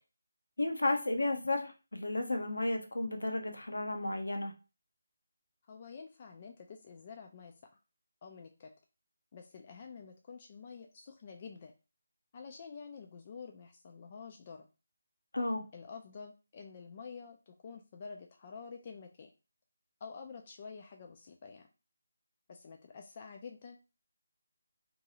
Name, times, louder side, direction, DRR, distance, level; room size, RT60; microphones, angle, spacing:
voice 1, 0.6-4.5 15.3-15.7, left 2 dB, 70° left, 5 dB, 0.6 m, -33 dB
voice 2, 5.7-7.5 8.2-8.7 9.3-11.7 12.3-14.7 15.7-19.3 20.0-21.7 22.5-23.8, left 5 dB, 35° left, 3 dB, 0.3 m, -49 dB
2.6 x 2.2 x 2.8 m, 0.31 s
figure-of-eight pair, 155°, 0 cm